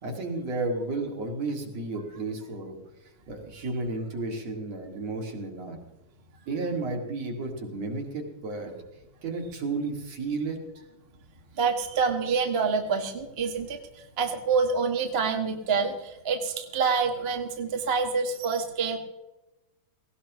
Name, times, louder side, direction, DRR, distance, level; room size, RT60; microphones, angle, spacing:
voice 1, 0.0-2.8 3.3-5.8 6.5-8.7 9.2-10.6, right 3 dB, 55° right, 2 dB, 3.4 m, -32 dB
voice 2, 11.6-13.8 14.2-19.0, right 5 dB, 35° right, 3 dB, 1.0 m, -27 dB
18.0 x 18.0 x 3.1 m, 0.99 s
omnidirectional pair, 3.6 m